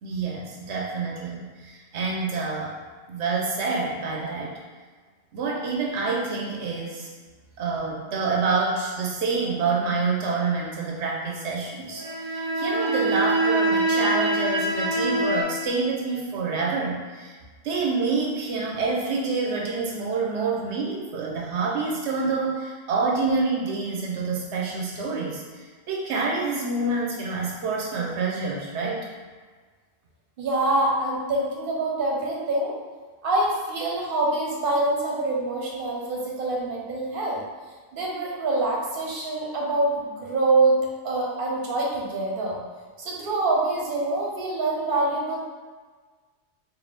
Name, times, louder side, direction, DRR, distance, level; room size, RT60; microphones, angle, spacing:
voice 1, 0.0-2.7 3.1-4.6 5.3-7.1 7.6-17.3 17.6-29.0, right 4 dB, 85° right, -2 dB, 0.9 m, -27 dB
sound 1, 11.9-15.4, right 2 dB, 20° right, 0.9 m, -24 dB
voice 2, 30.4-32.7 33.2-37.4 37.9-40.8 41.0-42.6 43.0-45.4, right 2 dB, 55° right, -3 dB, 0.9 m, -25 dB
3.9 x 2.5 x 3.3 m, 1.5 s
omnidirectional pair, 1.1 m